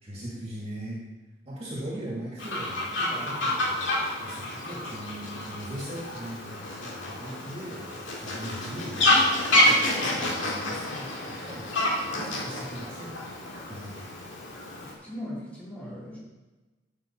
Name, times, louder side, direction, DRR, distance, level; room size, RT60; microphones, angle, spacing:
voice 1, 0.0-1.0 1.5-3.9 4.2-14.1, right 1 dB, 35° right, -5 dB, 2.0 m, -40 dB
Fowl, 2.4-14.9, left 1 dB, 85° left, 2.1 m, -28 dB
voice 2, 14.8-16.2, left 1 dB, 10° left, -8 dB, 3.5 m, -39 dB
11.5 x 6.1 x 4.3 m, 1.2 s
head